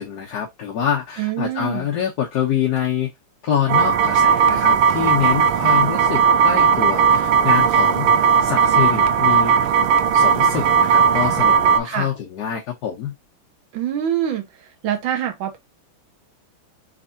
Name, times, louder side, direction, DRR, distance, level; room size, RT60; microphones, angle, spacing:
voice 1, 0.0-3.1 3.4-9.5 10.1-13.1, left 9 dB, 60° left, 1.1 m, -25 dB
voice 2, 1.2-1.9 11.8-12.1 13.7-14.4 14.8-15.6, right 10 dB, 65° right, 1.6 m, -24 dB
sound 1, 3.7-11.8, right 7 dB, 80° right, 1.4 m, -16 dB
4.3 x 3.3 x 2.6 m
omnidirectional pair, 2.4 m